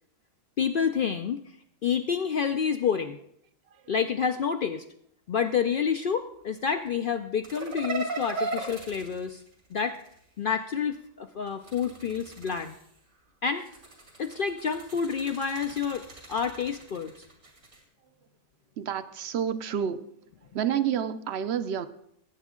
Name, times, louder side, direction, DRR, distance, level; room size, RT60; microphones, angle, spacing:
voice 1, 0.6-1.4 1.8-3.2 3.9-4.8 5.3-9.4 9.7-10.0 10.4-12.7 13.4-13.7 14.2-17.1, left 7 dB, 60° left, 7 dB, 0.5 m, -28 dB
sound 1, 7.4-10.2 11.5-13.0 13.6-17.8, right 3 dB, 80° right, 2.8 m, -38 dB
voice 2, 18.8-20.1 20.5-21.9, right 8 dB, 60° right, 12 dB, 0.8 m, -29 dB
17.5 x 8.2 x 3.7 m, 0.72 s
omnidirectional pair, 1.4 m